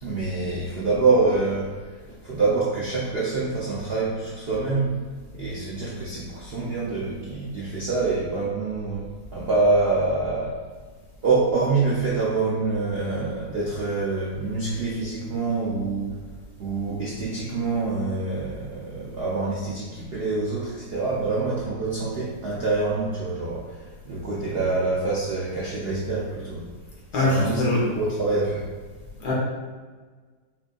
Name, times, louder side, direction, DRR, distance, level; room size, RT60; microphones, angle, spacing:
voice 1, 0.0-5.0 5.3-10.6 11.2-16.3 16.6-26.6 27.1-28.7, right 3 dB, 65° right, -6 dB, 0.6 m, -26 dB
voice 2, 27.1-27.9 29.2-29.3, left 1 dB, 75° left, -5 dB, 1.6 m, -22 dB
5.8 x 2.5 x 2.3 m, 1.4 s
omnidirectional pair, 1.8 m